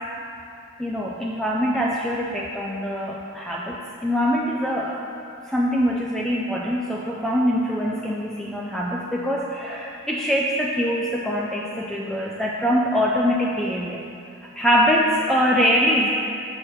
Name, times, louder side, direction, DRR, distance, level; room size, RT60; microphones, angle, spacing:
voice 1, 0.8-5.1 5.5-14.0 14.6-16.1, equal, ahead, -3 dB, 0.3 m, -23 dB
6.1 x 4.4 x 4.9 m, 2.5 s
head